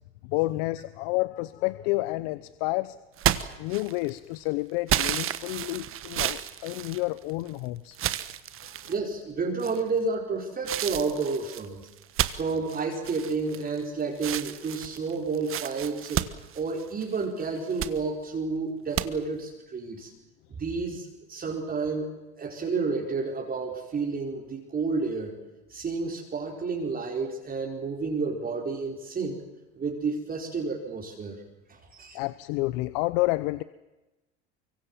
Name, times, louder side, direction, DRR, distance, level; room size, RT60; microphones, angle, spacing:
voice 1, 0.2-3.0 3.6-8.0 8.6-8.7 32.1-33.6, left 20 dB, 70° left, 16 dB, 0.9 m, -29 dB
sound 1, 3.2-4.2 4.9-7.5 7.9-9.0 9.6-10.1 10.7-13.8 14.2-17.2 17.6-18.0 19.0-19.1, right 12 dB, 45° right, 1.4 m, -31 dB
voice 2, 8.9-11.8 12.3-16.3 16.5-20.1 20.5-25.4 25.7-29.4 29.7-31.4 31.7-32.2, right 4 dB, 30° right, 0 dB, 4.8 m, -30 dB
25.0 x 23.5 x 7.4 m, 1.0 s
supercardioid pair, 100°, 31 cm